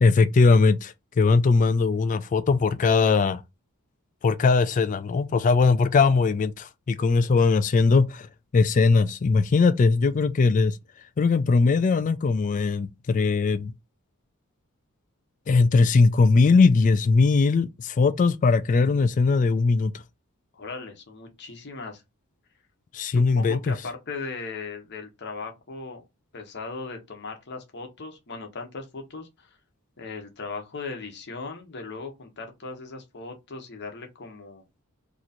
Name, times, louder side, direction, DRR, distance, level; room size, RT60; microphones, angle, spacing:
voice 1, 0.0-3.4 4.2-8.3 8.5-10.8 11.2-13.7 15.5-19.9 22.9-23.7, left 4 dB, 35° left, 0.3 m, -20 dB
voice 2, 20.5-22.0 23.1-26.0 26.3-29.6 30.0-34.6, left 4 dB, 50° left, 1.0 m, -38 dB
3.0 x 2.5 x 4.1 m
head